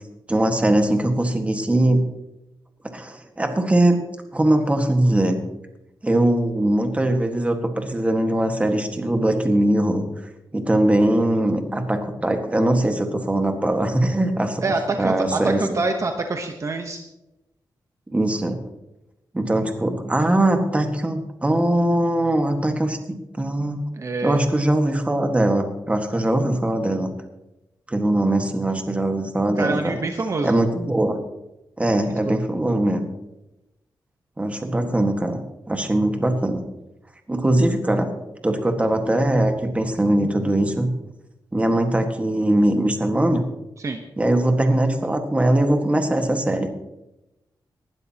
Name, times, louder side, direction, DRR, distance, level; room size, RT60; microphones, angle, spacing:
voice 1, 0.3-2.0 2.9-4.0 4.3-5.4 6.0-10.1 10.5-14.6 15.0-15.8 18.1-18.6 19.3-23.8 24.2-27.1 27.9-30.0 30.4-31.2 31.8-33.0 34.4-35.4 35.7-36.6 37.3-38.1 38.4-40.9 41.5-43.4 44.2-46.8, right 1 dB, 15° right, 5 dB, 1.7 m, -21 dB
voice 2, 14.6-17.0 24.0-24.4 29.6-30.5 32.0-32.4 43.8-44.0, right 3 dB, 40° right, 5 dB, 1.1 m, -26 dB
19.5 x 12.0 x 2.9 m, 0.93 s
wide cardioid pair, 110°, 8 cm